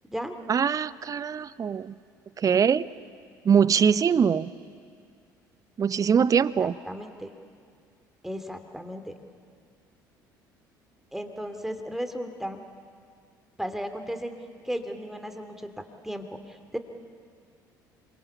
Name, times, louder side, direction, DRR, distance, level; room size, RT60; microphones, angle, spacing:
voice 1, 0.5-1.9 2.4-2.9 3.4-4.5 5.8-6.8, right 7 dB, 35° right, 18 dB, 0.7 m, -22 dB
voice 2, 6.6-7.3 8.2-9.1 11.1-12.6 13.6-14.3 14.6-16.8, equal, 5° right, 7 dB, 2.9 m, -35 dB
28.0 x 24.0 x 7.1 m, 2.1 s
figure-of-eight pair, 55°, 10 cm